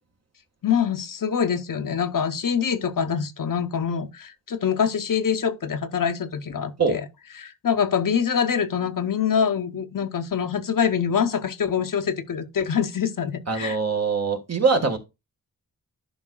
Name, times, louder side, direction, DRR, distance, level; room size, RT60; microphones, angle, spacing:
voice 1, 0.6-7.0 7.4-13.8, left 7 dB, 65° left, 0.8 m, -25 dB
voice 2, 13.5-15.0, right 4 dB, 45° right, 1.6 m, -22 dB
11.0 x 5.3 x 2.3 m
wide cardioid pair, 95°, 35 cm